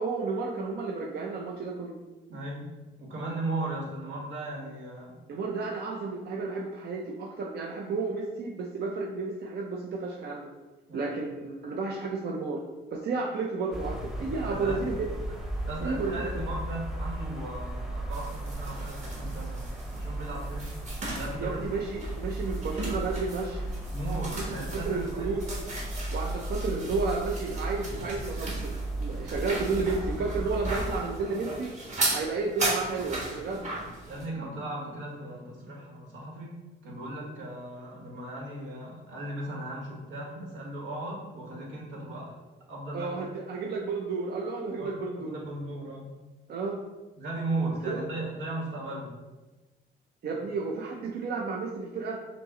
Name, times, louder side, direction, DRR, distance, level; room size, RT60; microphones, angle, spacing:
voice 1, 0.0-1.9 5.3-10.5 10.9-12.6 12.9-15.4 15.8-16.2 21.4-23.7 24.4-25.6 26.1-31.7 32.1-33.7 42.9-45.4 46.5-46.8 47.9-48.0 50.2-52.2, right 4 dB, 55° right, -1 dB, 0.6 m, -32 dB
voice 2, 2.3-2.7 3.0-5.2 10.9-11.1 14.2-14.8 15.6-19.6 19.9-20.7 21.1-21.6 23.9-25.3 30.2-30.3 34.1-42.4 42.7-43.1 44.8-46.1 47.2-49.2, right 2 dB, 80° right, -3 dB, 1.3 m, -37 dB
sound 1, 13.7-31.0, right 1 dB, ahead, 0.7 m, -35 dB
sound 2, 18.1-34.3, right 2 dB, 35° right, 1.2 m, -37 dB
5.4 x 2.1 x 3.7 m, 1.2 s
cardioid pair, 90°, 20 cm